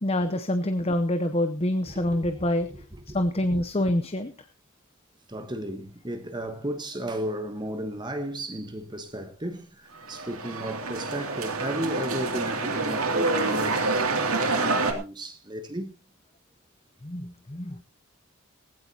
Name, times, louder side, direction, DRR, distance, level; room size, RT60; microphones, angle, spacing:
voice 1, 0.0-2.7 3.1-4.3 17.0-17.8, left 1 dB, 25° left, 0.7 m, -26 dB
voice 2, 1.9-2.5 3.1-3.2 3.5-3.6 5.3-15.9, right 1 dB, 20° right, 1.2 m, -35 dB
sound 1, 9.9-14.9, right 3 dB, 85° right, 2.6 m, -27 dB
18.5 x 15.5 x 2.8 m
head